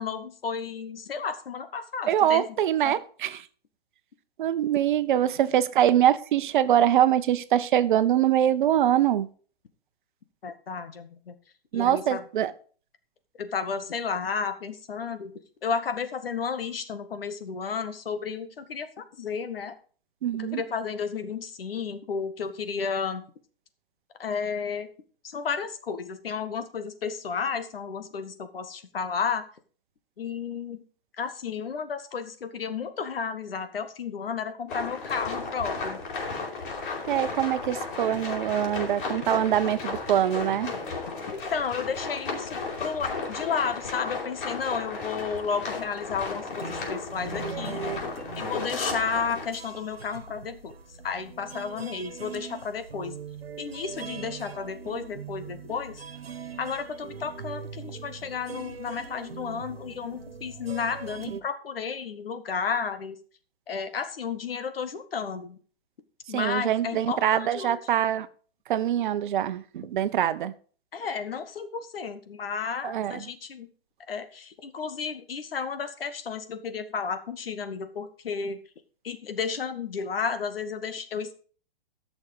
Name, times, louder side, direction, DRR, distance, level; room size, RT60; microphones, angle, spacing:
voice 1, 0.0-2.4 2.8-3.0 10.4-11.4 11.7-12.2 13.4-15.3 15.6-19.8 20.3-23.2 24.2-24.9 25.2-29.4 30.2-30.8 31.2-36.0 41.3-47.8 48.4-50.8 51.0-53.2 53.6-56.0 56.6-63.2 63.7-65.6 66.3-67.8 70.9-73.7 74.1-78.6 79.0-81.3, left 6 dB, 75° left, 1.8 m, -32 dB
voice 2, 2.1-3.4 4.4-9.3 11.7-12.5 20.2-20.6 37.1-40.7 66.3-68.3 68.7-70.5 72.8-73.2, right 11 dB, 55° right, 1.0 m, -24 dB
sound 1, 34.7-49.5, left 4 dB, 60° left, 4.7 m, -34 dB
sound 2, 46.5-61.4, right 5 dB, 90° right, 1.4 m, -41 dB
15.0 x 6.5 x 4.8 m
hypercardioid pair, 130°, 29 cm